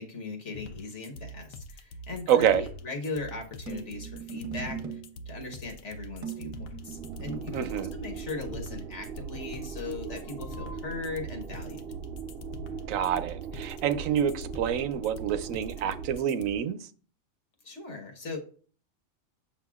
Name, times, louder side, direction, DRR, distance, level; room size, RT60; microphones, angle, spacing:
voice 1, 0.0-5.0 5.3-11.8 17.6-18.4, left 3 dB, 60° left, 1.5 m, -39 dB
sound 1, 0.5-16.5, equal, 80° left, 1.1 m, -44 dB
voice 2, 2.3-2.7 7.5-7.9 12.9-16.8, right 9 dB, 80° right, 1.0 m, -27 dB
sound 2, 3.7-5.2 6.2-7.7, right 6 dB, 30° right, 0.9 m, -39 dB
sound 3, 6.8-16.2, right 7 dB, 60° right, 0.6 m, -40 dB
7.8 x 6.1 x 2.4 m
omnidirectional pair, 1.4 m